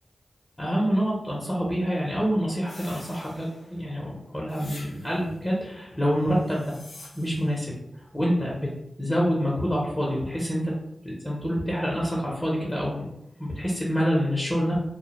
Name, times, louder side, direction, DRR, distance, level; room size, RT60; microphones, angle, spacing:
voice 1, 0.6-6.8 7.1-7.8 8.1-8.7 9.0-10.7 11.0-13.1 13.4-14.8, equal, 25° left, -5 dB, 0.7 m, -26 dB
sound 1, 2.6-3.8 4.5-5.4 6.3-7.6, left 2 dB, 90° left, 0.5 m, -47 dB
2.1 x 2.1 x 2.9 m, 0.81 s
cardioid pair, 45°, 0 cm